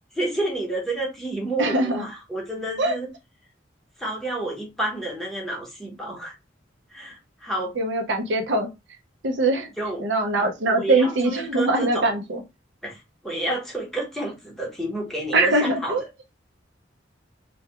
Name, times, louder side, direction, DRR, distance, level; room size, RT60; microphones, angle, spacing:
voice 1, 0.1-3.1 4.0-6.3 6.9-7.7 9.8-10.0 10.7-12.1 12.8-16.0, right 1 dB, ahead, 0.8 m, -30 dB
voice 2, 1.6-2.0 2.8-3.0 7.8-8.7 9.2-9.7 10.0-12.4 15.3-16.0, right 2 dB, 75° right, 0.6 m, -22 dB
2.3 x 2.2 x 2.8 m
head